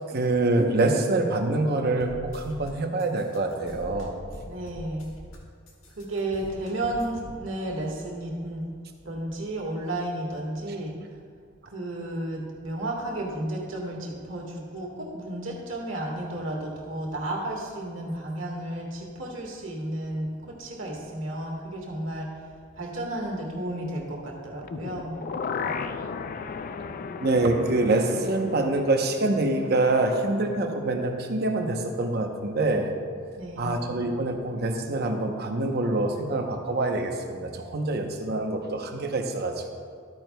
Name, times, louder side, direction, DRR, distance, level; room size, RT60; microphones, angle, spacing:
voice 1, 0.1-4.1 27.2-32.9 33.6-39.7, right 2 dB, 55° right, 4 dB, 0.8 m, -25 dB
sound 1, 2.0-2.7 3.0-5.4 5.7-7.3, equal, 85° left, 1.4 m, -43 dB
voice 2, 4.4-5.1 6.0-8.7 9.0-10.9 11.6-22.3 22.7-25.2 33.4-33.8, right 1 dB, 75° right, -2 dB, 1.6 m, -32 dB
sound 2, 24.6-30.7 31.0-31.1, left 5 dB, 45° left, 0.4 m, -36 dB
12.5 x 9.0 x 2.3 m, 2.1 s
head